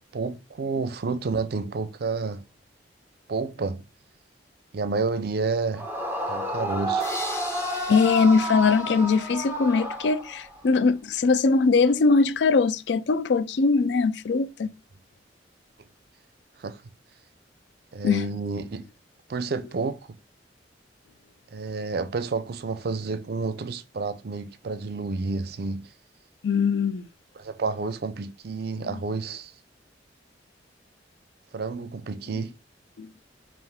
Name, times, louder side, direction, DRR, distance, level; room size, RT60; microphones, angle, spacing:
voice 1, 0.1-2.4 3.3-3.8 4.7-5.9 6.3-7.1 16.6-16.8 17.9-18.9 19.3-20.2 21.5-25.9 27.4-29.5 31.5-32.5, right 4 dB, 60° right, 0.4 m, -30 dB
Yell / Screaming, 5.7-10.6, right 1 dB, 10° right, 1.0 m, -31 dB
sound 1, 7.0-10.0, left 1 dB, 15° left, 0.8 m, -40 dB
voice 2, 7.9-14.7 18.0-18.2 26.4-27.1 28.8-29.0 32.3-32.4 33.0-33.1, left 4 dB, 70° left, 0.4 m, -21 dB
5.5 x 2.5 x 3.5 m
head